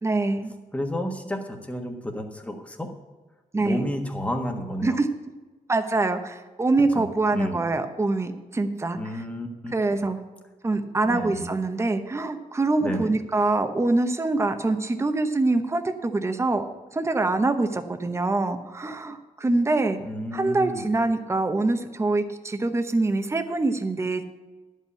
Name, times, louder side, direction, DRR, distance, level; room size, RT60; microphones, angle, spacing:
voice 1, 0.0-0.5 3.5-3.8 4.8-5.1 5.7-9.0 9.7-10.2 10.6-20.0 20.3-24.2, right 2 dB, 20° right, 7 dB, 0.9 m, -24 dB
voice 2, 0.7-2.9 3.6-5.0 6.9-7.7 8.9-10.0 11.0-11.5 12.8-13.1 20.0-20.9, equal, 10° left, 3 dB, 1.4 m, -31 dB
11.0 x 5.6 x 8.3 m, 1.2 s
cardioid pair, 100°, 13 cm